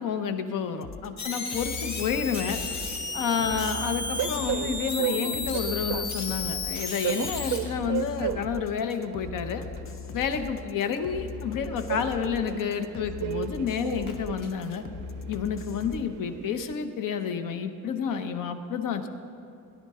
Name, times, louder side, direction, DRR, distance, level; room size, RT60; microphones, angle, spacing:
voice 1, 0.0-2.6 3.1-9.6 10.1-14.8 15.3-19.1, left 6 dB, 80° left, 8 dB, 0.9 m, -30 dB
sound 1, 0.8-16.0, left 6 dB, 45° left, 0.5 m, -40 dB
sound 2, 1.2-7.6 11.0-11.1 14.1-14.2, left 3 dB, 60° left, 2.0 m, -33 dB
Train, 2.8-16.7, right 11 dB, 70° right, 0.5 m, -36 dB
17.5 x 10.5 x 3.7 m, 2.7 s
cardioid pair, 145°, 32 cm